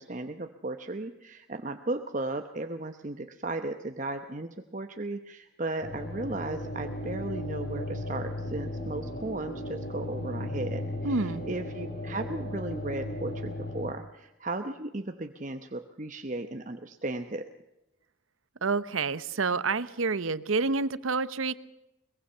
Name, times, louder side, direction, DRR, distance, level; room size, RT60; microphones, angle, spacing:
voice 1, 0.0-10.8 11.4-17.5, right 2 dB, 40° right, 7 dB, 0.9 m, -35 dB
sound 1, 5.8-13.9, left 1 dB, 50° left, 3.7 m, -36 dB
voice 2, 11.0-11.4 18.6-21.6, right 4 dB, 85° right, 15 dB, 0.9 m, -28 dB
23.0 x 21.5 x 5.6 m, 0.92 s
head